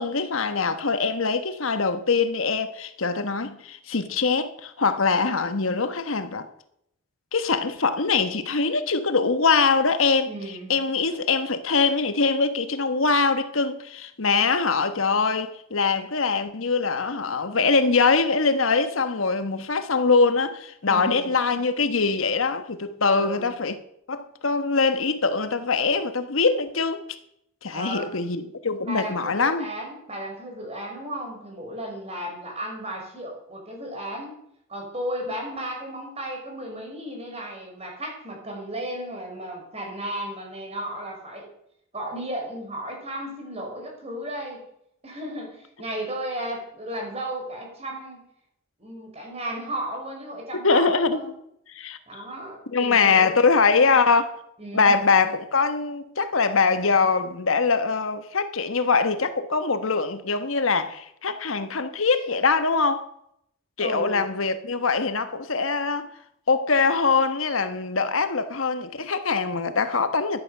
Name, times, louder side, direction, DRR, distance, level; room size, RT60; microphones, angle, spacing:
voice 1, 0.0-6.5 7.3-10.3 10.7-23.8 24.1-27.0 27.6-29.7 50.6-51.2 51.7-52.0 52.7-54.3 54.7-63.1 63.8-66.1 66.5-70.4, left 4 dB, 70° left, 1.2 m, -23 dB
voice 2, 10.3-10.7 20.9-21.3 23.1-23.5 27.7-28.1 28.8-34.4 34.7-41.5 41.9-44.6 45.0-48.3 48.8-51.3 52.1-53.3 53.7-54.0 54.6-55.0 63.8-64.2, right 1 dB, 30° right, 5.3 m, -34 dB
14.0 x 11.0 x 6.7 m
head